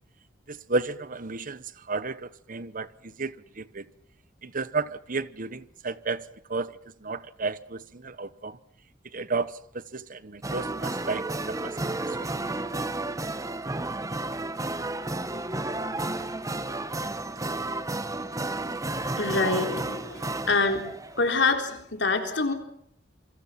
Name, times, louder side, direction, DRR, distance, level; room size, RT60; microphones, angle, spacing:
voice 1, 0.5-3.8 4.4-8.6 9.1-11.9 12.2-12.4, right 3 dB, 45° right, 1.2 m, -33 dB
sound 1, 10.4-21.5, right 2 dB, 20° right, 1.2 m, -32 dB
voice 2, 19.2-20.8 21.1-22.5, left 3 dB, 70° left, 4.0 m, -26 dB
27.5 x 26.0 x 5.9 m
head